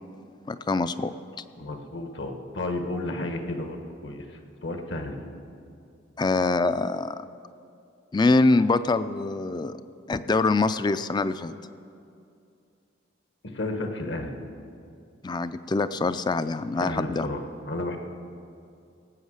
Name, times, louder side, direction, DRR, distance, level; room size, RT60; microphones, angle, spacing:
voice 1, 0.5-1.1 6.2-7.2 8.1-9.8 10.1-11.5 15.2-17.3, left 3 dB, 20° left, 13 dB, 0.3 m, -24 dB
voice 2, 1.6-5.3 13.4-14.3 16.8-17.4 17.7-18.0, left 2 dB, 65° left, 5 dB, 1.3 m, -32 dB
17.5 x 8.1 x 6.4 m, 2.5 s
head